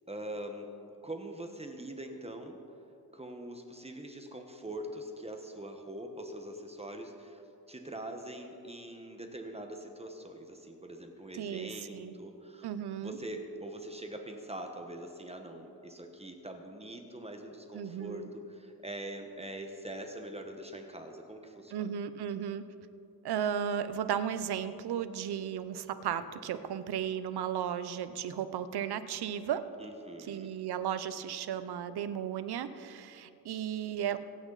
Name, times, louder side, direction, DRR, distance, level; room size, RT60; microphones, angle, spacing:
voice 1, 0.1-0.7 1.0-2.6 3.1-7.4 7.7-12.7 13.0-21.9 29.8-30.5, right 1 dB, 15° right, 4 dB, 1.2 m, -43 dB
voice 2, 11.3-12.1 12.6-13.2 17.7-18.3 21.7-22.6 23.2-29.6 30.2-34.2, right 9 dB, 80° right, 12 dB, 0.8 m, -35 dB
25.5 x 9.3 x 4.1 m, 2.8 s
cardioid pair, 110°, 38 cm